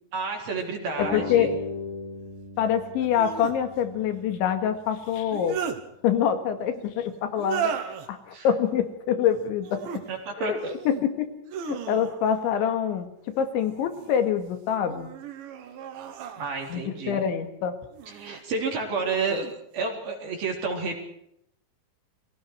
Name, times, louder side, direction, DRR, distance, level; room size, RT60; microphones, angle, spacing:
voice 1, 0.1-1.6 8.3-8.5 10.1-10.8 16.4-17.2 18.1-19.5 19.7-21.0, right 4 dB, 55° right, 2 dB, 5.4 m, -30 dB
sound 1, 0.6-0.7 3.0-3.6 5.1-5.8 7.3-8.1 9.6-10.0 10.5-11.1 11.5-12.4 13.6-14.2 14.8-16.9 17.9-18.4 19.0-19.5, right 8 dB, 80° right, 4.3 m, -35 dB
voice 2, 1.0-1.5 2.6-5.6 6.0-7.7 8.1-9.8 10.4-10.6 10.9-11.3 11.7-13.1 13.4-15.1 16.7-17.7, left 8 dB, 85° left, 7 dB, 4.4 m, -25 dB
sound 2, 1.0-4.2, left 3 dB, 55° left, 7.6 m, -36 dB
29.5 x 23.0 x 4.7 m, 0.75 s
omnidirectional pair, 5.2 m